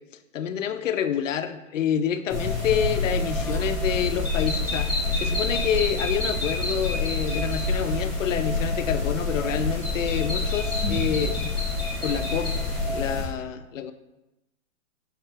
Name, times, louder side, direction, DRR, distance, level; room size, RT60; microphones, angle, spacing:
voice 1, 0.3-11.4 12.0-13.9, left 9 dB, 65° left, 10 dB, 0.5 m, -28 dB
sound 1, 2.3-13.2, left 2 dB, 10° right, 0.5 m, -27 dB
4.9 x 3.3 x 3.3 m, 0.97 s
hypercardioid pair, 160°, 42 cm